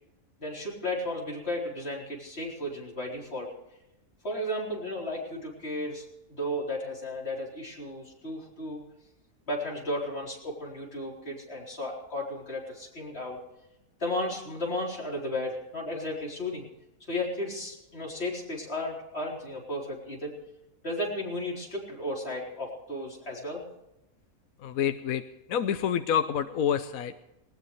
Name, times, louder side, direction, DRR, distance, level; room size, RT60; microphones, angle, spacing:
voice 1, 0.4-3.5 4.2-8.8 9.5-13.4 14.0-16.7 17.1-20.3 20.8-23.6, left 1 dB, 45° left, -2 dB, 4.4 m, -34 dB
voice 2, 24.6-25.2 25.5-27.3, left 8 dB, 70° left, 9 dB, 1.2 m, -28 dB
19.5 x 18.5 x 3.3 m, 0.90 s
omnidirectional pair, 1.5 m